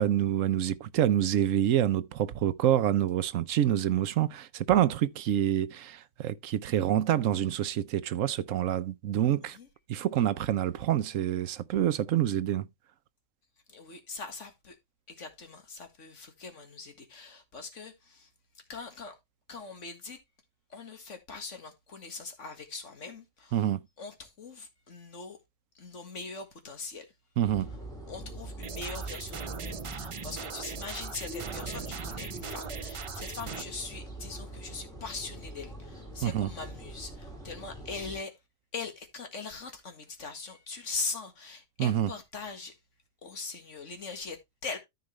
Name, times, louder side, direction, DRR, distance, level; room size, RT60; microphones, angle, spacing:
voice 1, 0.0-9.6 9.9-12.7 23.5-23.8 27.4-27.7 36.2-36.5 41.8-42.1, right 11 dB, 90° right, 1.1 m, -27 dB
voice 2, 13.7-14.8 15.1-19.2 19.5-20.2 20.7-23.7 24.0-25.4 25.7-27.1 28.1-38.4 38.7-42.8 43.2-44.8, left 4 dB, 70° left, 2.1 m, -41 dB
sound 1, 27.4-38.2, right 1 dB, 5° left, 4.2 m, -43 dB
sound 2, 28.6-33.6, right 6 dB, 55° right, 0.3 m, -40 dB
13.5 x 4.6 x 3.1 m
omnidirectional pair, 1.3 m